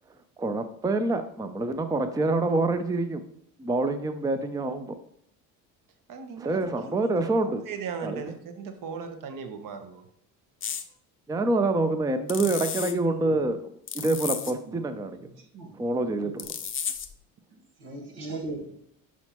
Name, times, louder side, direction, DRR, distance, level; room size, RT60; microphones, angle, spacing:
voice 1, 0.4-3.2 3.6-5.0 6.4-7.6 8.0-8.3 11.3-15.3 15.7-16.5, right 2 dB, 10° right, 9 dB, 0.5 m, -27 dB
voice 2, 6.1-10.0, right 6 dB, 55° right, 7 dB, 1.1 m, -38 dB
sound 1, 10.6-10.8 12.3-12.9 13.9-14.5 16.4-17.1, left 8 dB, 30° left, 0.7 m, -33 dB
voice 3, 12.8-13.2 14.4-14.7 15.4-15.8 16.2-16.5 17.8-18.8, right 2 dB, 85° right, 0 dB, 1.9 m, -38 dB
6.2 x 5.8 x 3.0 m, 0.70 s
supercardioid pair, 90°, 40 cm